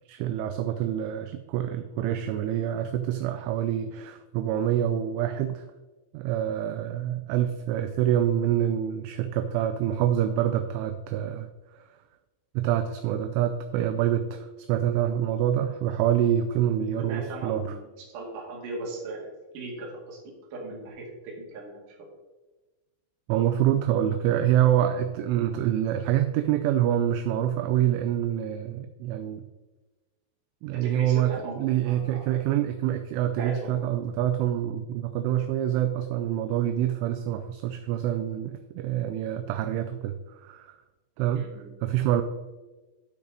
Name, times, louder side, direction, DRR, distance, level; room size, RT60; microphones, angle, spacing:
voice 1, 0.1-5.6 6.1-11.8 12.6-17.8 23.3-29.4 30.6-31.3 31.6-40.8 41.2-41.4 41.8-42.2, right 11 dB, 85° right, 7 dB, 2.8 m, -26 dB
voice 2, 17.0-22.0 30.7-32.3 33.4-33.9 41.4-41.7, right 2 dB, 50° right, -3 dB, 2.9 m, -38 dB
12.0 x 6.2 x 4.0 m, 1.2 s
omnidirectional pair, 5.8 m